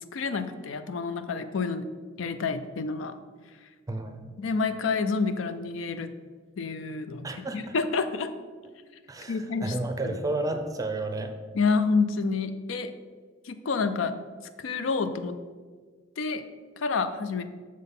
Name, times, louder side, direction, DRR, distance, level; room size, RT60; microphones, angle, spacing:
voice 1, 0.1-1.9 2.2-3.2 4.4-6.1 6.6-7.3 7.5-8.3 9.3-9.8 10.0-10.2 11.5-12.9 13.4-14.2 14.6-15.4 16.2-16.4 16.8-17.4, left 4 dB, 80° left, 10 dB, 0.5 m, -28 dB
voice 2, 3.9-4.3 7.2-7.7 9.1-11.3, right 2 dB, 20° right, 6 dB, 0.5 m, -32 dB
6.4 x 3.9 x 5.4 m, 1.5 s
head